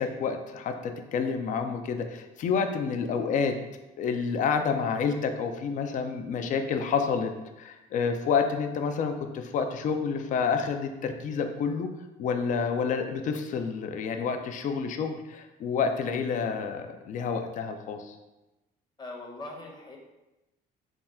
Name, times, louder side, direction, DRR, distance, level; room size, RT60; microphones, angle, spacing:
voice 1, 0.0-3.5 4.0-7.3 7.6-11.9 12.2-18.1, left 6 dB, 50° left, 6 dB, 0.4 m, -29 dB
voice 2, 19.0-20.0, left 2 dB, 25° left, 0 dB, 0.8 m, -41 dB
3.5 x 2.3 x 4.2 m, 1.0 s
cardioid pair, 110°, 17 cm